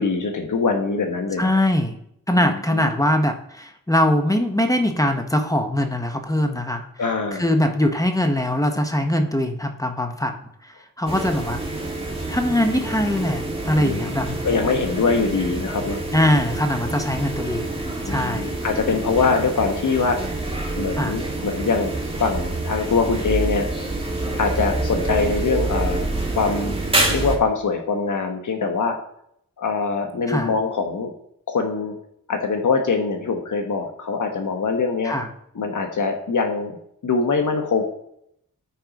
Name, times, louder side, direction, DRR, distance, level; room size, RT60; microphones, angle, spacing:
voice 1, 0.0-1.5 2.3-2.9 7.0-7.5 13.8-14.1 14.4-16.0 18.1-20.4 20.8-23.7 24.4-26.1 26.3-26.7 27.1-29.0 29.6-31.1 31.5-32.0 32.3-35.2 35.5-36.8 37.0-37.8, left 4 dB, 65° left, 4 dB, 1.2 m, -23 dB
voice 2, 1.4-2.0 2.3-6.8 7.4-10.4 10.6-11.6 12.3-14.3 16.1-17.7 18.1-18.5 21.0-21.1 30.3-30.5 35.0-35.3, left 1 dB, 10° left, 5 dB, 1.0 m, -22 dB
sound 1, 11.1-27.4, right 2 dB, 15° right, 1.7 m, -27 dB
9.3 x 4.4 x 5.1 m, 0.72 s
wide cardioid pair, 90°, 32 cm